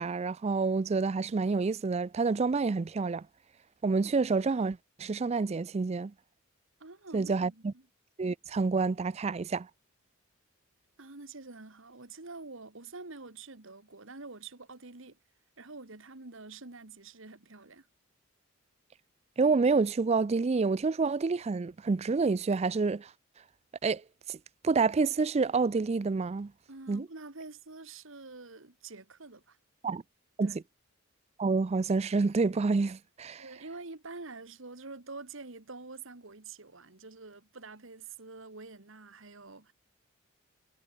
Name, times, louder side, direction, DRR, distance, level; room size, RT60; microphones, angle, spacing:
voice 1, 0.0-3.3 3.8-6.1 7.1-7.7 8.2-9.7 19.4-23.1 23.8-24.0 24.3-24.4 24.6-26.5 26.9-27.1 29.8-30.0 30.4-30.6 31.4-33.4, right 4 dB, 30° right, 0.4 m, -28 dB
voice 2, 6.8-7.8 11.0-15.2 15.6-17.9 26.7-29.6 30.4-30.6 33.4-39.7, right 3 dB, 60° right, 1.8 m, -47 dB
head